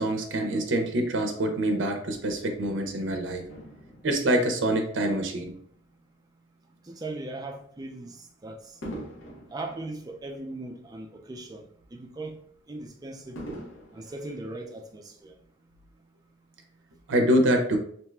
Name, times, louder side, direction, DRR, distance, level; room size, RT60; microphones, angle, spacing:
voice 1, 0.0-3.4 4.0-5.5 17.1-17.8, right 1 dB, 75° right, 0.5 m, -25 dB
Fireworks, 3.5-6.1 6.7-6.9 8.8-11.3 11.7-11.8 13.4-15.2 16.0-16.1, equal, 85° left, 0.7 m, -44 dB
voice 2, 6.8-8.7 9.5-11.7 11.9-12.4 12.7-13.6 13.9-15.4, right 2 dB, 20° right, 0.3 m, -39 dB
2.7 x 2.2 x 3.2 m
head